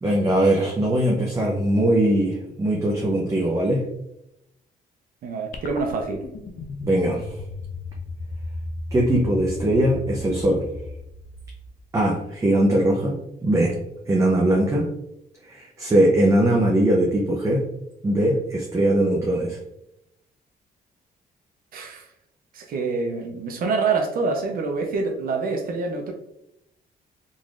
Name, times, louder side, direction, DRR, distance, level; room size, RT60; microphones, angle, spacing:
voice 1, 0.0-3.9 6.8-7.3 8.9-10.6 11.9-13.2 13.4-13.8 14.1-14.9 15.4-17.6 18.0-19.6, right 1 dB, 20° right, -3 dB, 0.7 m, -20 dB
voice 2, 5.2-6.2 21.7-22.0 22.5-26.1, right 4 dB, 65° right, 4 dB, 0.6 m, -26 dB
sound 1, 5.5-12.0, left 2 dB, 60° left, 0.6 m, -35 dB
3.9 x 3.1 x 2.5 m, 0.82 s
cardioid pair, 120°, 16 cm